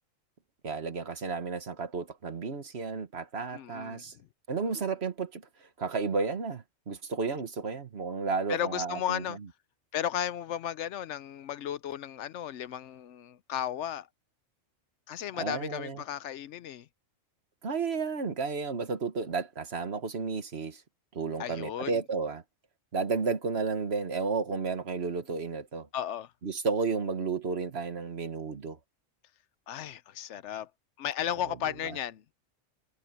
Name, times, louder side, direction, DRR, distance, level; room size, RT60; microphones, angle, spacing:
voice 1, 0.6-4.1 4.5-5.4 5.8-9.2 15.3-16.0 17.6-20.8 21.1-22.4 22.9-25.9 26.4-28.8 31.9-32.0, right 4 dB, 55° right, 1.7 m, -32 dB
voice 2, 3.5-4.2 4.6-4.9 8.5-9.4 9.9-14.1 15.1-16.9 21.4-22.0 25.9-26.3 29.7-30.7 31.0-32.2, left 10 dB, 70° left, 0.9 m, -35 dB
omnidirectional pair, 1.4 m